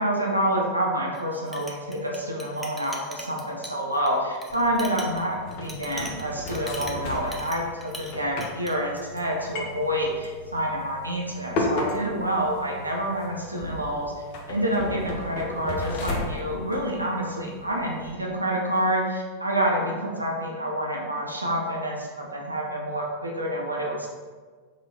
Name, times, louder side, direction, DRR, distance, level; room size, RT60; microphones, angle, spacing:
voice 1, 0.0-24.1, right 1 dB, 85° right, -1 dB, 0.5 m, -28 dB
Chink clink, 1.1-8.1 8.4-8.7, equal, ahead, 0.5 m, -41 dB
sound 1, 4.5-18.1, left 2 dB, 45° left, 0.6 m, -35 dB
3.7 x 3.4 x 2.7 m, 1.5 s
figure-of-eight pair, 90°, 0 cm